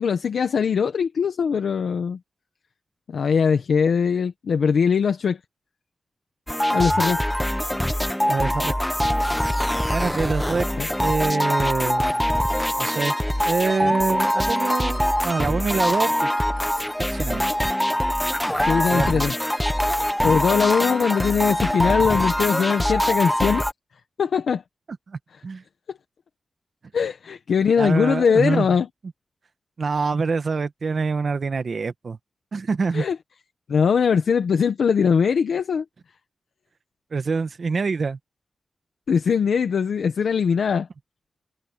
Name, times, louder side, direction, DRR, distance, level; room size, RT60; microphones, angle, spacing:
voice 1, 0.0-2.2 3.1-5.4 6.7-7.2 10.8-10.9 18.7-19.3 20.2-23.6 24.2-24.6 26.9-28.9 32.9-33.2 33.7-35.8 39.1-40.9, left 6 dB, 90° left, 1.4 m, -21 dB
sound 1, 6.5-23.7, equal, 5° left, 1.2 m, -23 dB
voice 2, 8.3-8.7 9.9-10.7 11.0-12.3 12.8-13.1 13.4-16.3 17.1-17.4 18.9-19.2 25.1-25.6 27.8-28.7 29.8-32.2 32.5-33.0 37.1-38.2, right 4 dB, 60° right, 1.4 m, -25 dB
wide cardioid pair, 80°, 0 cm